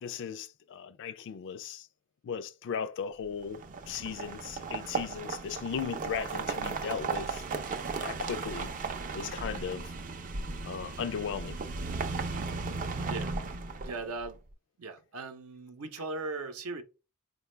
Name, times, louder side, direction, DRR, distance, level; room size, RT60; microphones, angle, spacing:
voice 1, 0.0-1.9 2.2-7.6 8.0-8.7 9.1-9.8 10.6-11.6, left 7 dB, 60° left, 0.3 m, -37 dB
sound 1, 3.4-14.3, right 4 dB, 40° right, 0.4 m, -36 dB
voice 2, 13.0-13.3 13.8-14.4 14.8-16.8, right 3 dB, 75° right, 0.7 m, -38 dB
4.3 x 2.2 x 3.1 m
head